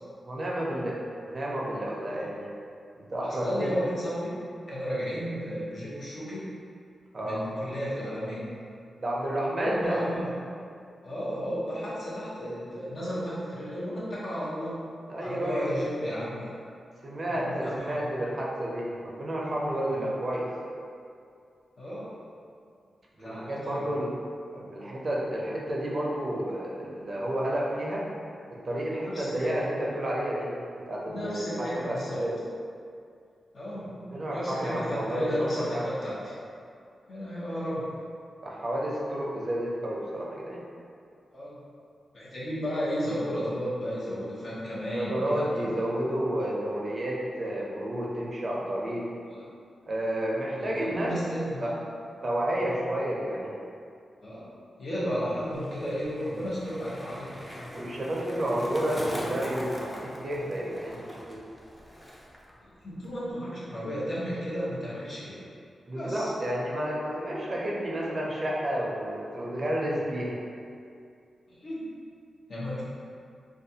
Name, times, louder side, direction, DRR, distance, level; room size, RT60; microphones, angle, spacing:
voice 1, 0.2-2.5 3.0-3.8 7.1-7.4 9.0-10.0 15.1-15.8 17.0-20.5 23.2-24.1 24.5-28.0 28.6-30.5 30.9-32.4 34.1-35.9 38.4-40.6 44.9-49.0 49.9-51.1 51.6-51.7 52.2-53.5 57.7-59.9 60.2-61.4 65.8-70.4, right 1 dB, 45° right, -4 dB, 0.5 m, -31 dB
voice 2, 3.2-4.3 4.7-6.5 7.2-8.4 9.6-10.3 11.0-14.8 15.2-16.4 17.3-18.0 19.9-20.1 21.8-22.1 23.2-23.8 29.0-29.5 31.1-32.2 33.5-36.3 37.1-37.9 41.3-41.5 42.1-45.7 49.3-49.4 50.6-51.8 54.2-54.5 54.8-57.3 62.8-65.4 65.9-66.3 71.5-71.9 72.5-72.8, equal, 65° left, -9 dB, 0.8 m, -33 dB
Skateboard, 55.0-62.5 62.8-63.3, equal, 10° left, 0.4 m, -41 dB
2.4 x 2.3 x 2.7 m, 2.3 s
cardioid pair, 85°, 0 cm